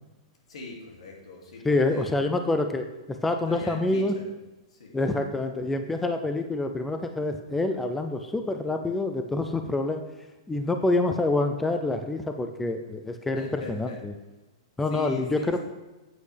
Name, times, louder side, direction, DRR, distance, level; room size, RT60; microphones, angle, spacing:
voice 1, 0.5-2.2 3.5-4.3 4.7-5.0 13.3-14.0 14.9-15.6, left 2 dB, 85° left, 0 dB, 2.6 m, -41 dB
voice 2, 1.6-2.9 3.2-4.1 4.9-10.0 10.5-14.1 14.8-15.6, left 2 dB, 5° left, 6 dB, 0.4 m, -26 dB
9.9 x 8.4 x 3.4 m, 1.1 s
hypercardioid pair, 165°, 3 cm